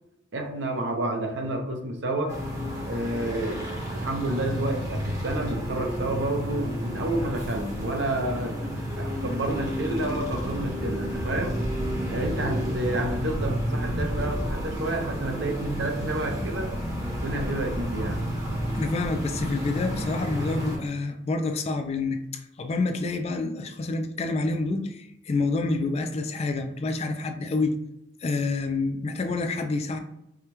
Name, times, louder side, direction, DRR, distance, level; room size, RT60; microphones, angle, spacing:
voice 1, 0.3-2.4 2.9-3.6 3.9-11.6 12.1-16.7 17.2-18.2, right 1 dB, 70° right, 3 dB, 0.7 m, -30 dB
sound 1, 2.3-20.8, equal, 20° right, 0.8 m, -31 dB
voice 2, 18.7-27.7 28.2-30.0, left 3 dB, 35° left, 6 dB, 0.3 m, -28 dB
4.8 x 2.2 x 2.9 m, 0.83 s
head